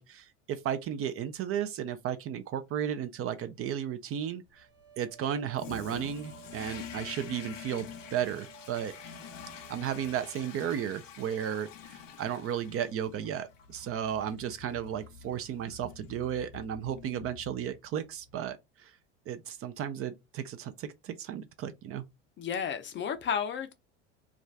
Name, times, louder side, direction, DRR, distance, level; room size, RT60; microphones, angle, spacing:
voice 1, 0.0-4.7 5.0-8.9 9.7-18.9 19.3-22.0, right 9 dB, 40° right, 0.4 m, -34 dB
sound 1, 4.5-10.6, right 8 dB, 85° right, 1.0 m, -54 dB
Toilet flush, 5.5-17.9, left 7 dB, 85° left, 0.6 m, -47 dB
voice 2, 22.4-23.7, left 7 dB, 30° left, 0.5 m, -32 dB
2.5 x 2.3 x 3.2 m
hypercardioid pair, 75°, 37 cm